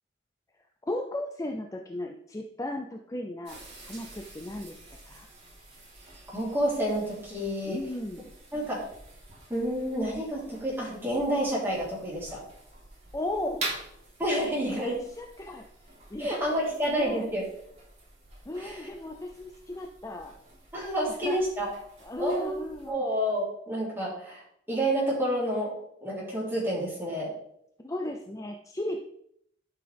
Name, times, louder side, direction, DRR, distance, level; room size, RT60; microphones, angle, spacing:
voice 1, 0.9-3.6 3.8-5.3 7.6-8.3 13.1-13.7 14.4-15.7 16.1-17.3 18.5-20.3 21.2-21.4 22.0-23.0 27.8-29.0, left 1 dB, 20° left, 3 dB, 0.5 m, -36 dB
sound 1, 3.4-22.9, right 2 dB, 40° right, 3.6 m, -46 dB
voice 2, 6.3-7.8 8.5-8.8 9.5-12.4 14.2-15.0 16.2-17.4 18.6-18.9 20.7-21.7 22.2-22.6 22.9-24.4 24.7-25.7 26.0-27.3, right 1 dB, 10° right, -6 dB, 3.5 m, -29 dB
11.5 x 5.8 x 3.5 m, 0.72 s
head